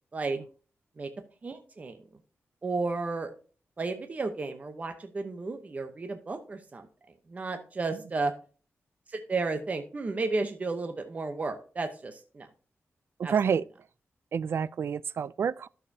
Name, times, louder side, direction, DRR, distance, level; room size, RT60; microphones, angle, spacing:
voice 1, 1.4-2.0 2.6-3.3 3.8-6.9 7.3-8.3 9.1-12.5 13.2-13.3, right 3 dB, 30° right, 0.8 m, -33 dB
voice 2, 13.2-13.6 14.3-15.7, right 7 dB, 60° right, 0.3 m, -28 dB
12.5 x 6.7 x 2.7 m
wide cardioid pair, 165°, 5 cm